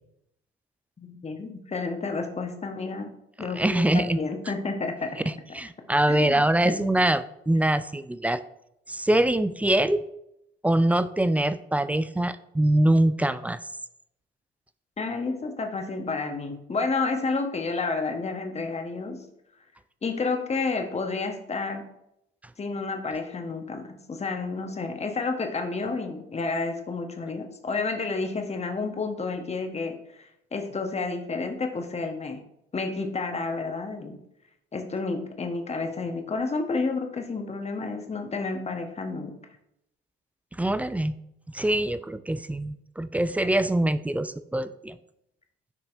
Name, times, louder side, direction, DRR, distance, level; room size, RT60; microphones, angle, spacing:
voice 1, 1.0-5.2 6.1-6.8 15.0-19.3 20.0-21.9 22.6-32.4 32.7-34.2 34.7-39.4, left 3 dB, 20° left, 5 dB, 1.1 m, -30 dB
voice 2, 3.4-4.2 5.5-8.4 8.9-10.0 10.6-13.6 40.6-41.2 41.5-45.0, right 1 dB, 5° right, 13 dB, 0.3 m, -24 dB
10.5 x 6.0 x 2.6 m, 0.80 s
figure-of-eight pair, 50°, 30 cm